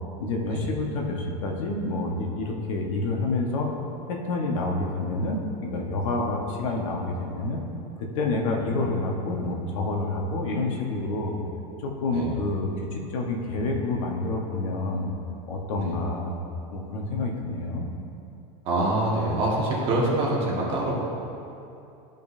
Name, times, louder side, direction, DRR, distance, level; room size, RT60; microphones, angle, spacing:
voice 1, 0.2-3.7 4.1-7.6 8.0-11.4 11.8-15.1 15.5-16.4 16.7-17.9, left 2 dB, 80° left, 0 dB, 1.4 m, -28 dB
voice 2, 8.8-9.3 12.1-12.3 15.8-15.9 18.6-21.0, right 1 dB, 30° right, -5 dB, 1.9 m, -26 dB
14.5 x 5.4 x 2.7 m, 2.7 s
supercardioid pair, 165°, 16 cm